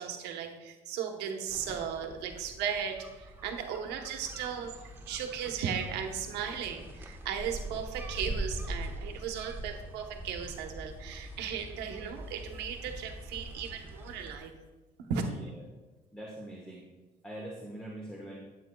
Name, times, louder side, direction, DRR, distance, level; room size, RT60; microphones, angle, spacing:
voice 1, 0.0-4.7 5.1-14.5 15.1-15.3, right 7 dB, 85° right, 4 dB, 1.0 m, -36 dB
sound 1, 1.5-14.4, right 1 dB, 15° right, 1.1 m, -43 dB
voice 2, 16.1-16.8 17.2-18.4, right 1 dB, 5° left, -3 dB, 1.3 m, -43 dB
12.5 x 8.3 x 2.3 m, 1.2 s
cardioid pair, 110°, 17 cm